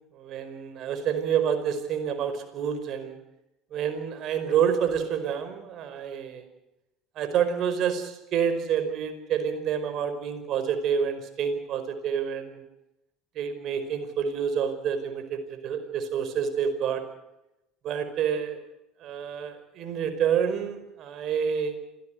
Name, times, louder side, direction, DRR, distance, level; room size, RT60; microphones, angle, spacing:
voice 1, 0.1-3.2 3.7-6.4 7.2-12.6 13.4-17.0 17.8-18.6 19.0-21.7, right 8 dB, 50° right, 9 dB, 5.0 m, -28 dB
27.0 x 18.0 x 8.0 m, 0.93 s
hypercardioid pair, 70°, 0 cm